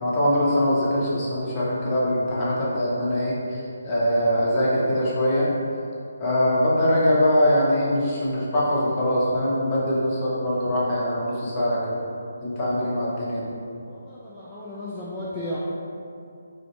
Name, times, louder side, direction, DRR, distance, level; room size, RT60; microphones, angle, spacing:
voice 1, 0.0-5.5 6.2-12.0 12.4-13.5, equal, 25° left, -7 dB, 1.0 m, -22 dB
voice 2, 13.8-15.6, left 1 dB, 5° left, -12 dB, 0.4 m, -34 dB
3.2 x 2.7 x 4.2 m, 2.5 s
figure-of-eight pair, 150°, 0 cm